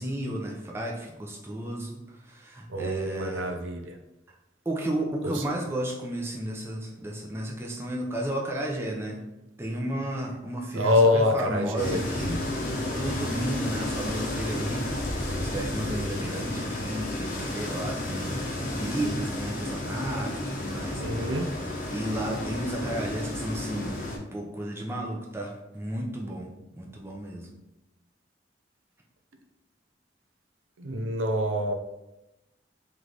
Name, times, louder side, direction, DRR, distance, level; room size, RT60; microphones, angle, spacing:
voice 1, 0.0-3.6 4.7-9.2 9.6-12.4 12.9-15.0 15.3-18.4 18.7-21.5 21.9-24.0 24.3-27.5, right 1 dB, 15° right, -1 dB, 0.5 m, -33 dB
voice 2, 2.7-3.9 5.2-5.4 10.8-12.0 21.0-21.5 30.8-31.7, left 1 dB, 85° right, 5 dB, 0.5 m, -25 dB
sound 1, 11.8-24.2, left 1 dB, 45° left, 0.8 m, -32 dB
3.3 x 3.2 x 3.8 m, 0.93 s
head